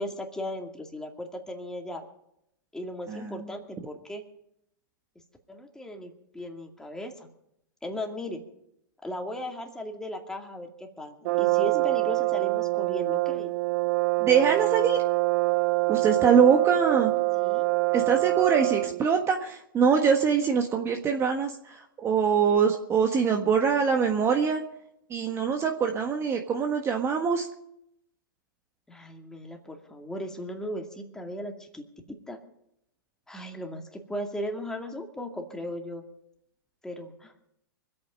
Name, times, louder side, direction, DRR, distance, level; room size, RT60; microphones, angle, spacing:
voice 1, 0.0-2.1 2.7-4.2 5.5-7.3 7.8-8.4 9.0-13.5 17.4-17.7 28.9-32.4 33.3-36.0 36.8-37.3, left 1 dB, 5° left, 2 dB, 2.3 m, -37 dB
voice 2, 3.1-3.5 11.7-11.8 14.2-15.0 15.9-17.1 17.9-24.6 25.1-27.5, right 6 dB, 25° right, 4 dB, 1.5 m, -24 dB
Brass instrument, 11.2-19.0, right 23 dB, 50° right, 0.5 m, -25 dB
24.5 x 8.8 x 5.4 m, 0.77 s
hypercardioid pair, 120°, 11 cm